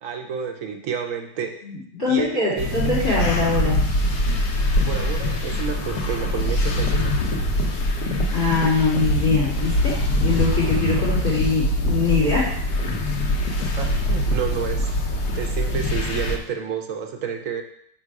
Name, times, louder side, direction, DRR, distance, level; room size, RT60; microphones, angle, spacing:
voice 1, 0.0-1.5 2.1-2.7 3.1-3.2 4.8-7.2 13.6-14.9 15.3-17.6, right 7 dB, 65° right, 3 dB, 0.9 m, -30 dB
voice 2, 1.6-3.8 8.3-9.9 10.2-12.6, left 3 dB, 10° left, -8 dB, 2.6 m, -22 dB
sound 1, 2.6-16.4, left 1 dB, 70° left, 1.3 m, -23 dB
5.5 x 3.7 x 4.7 m, 0.67 s
omnidirectional pair, 1.9 m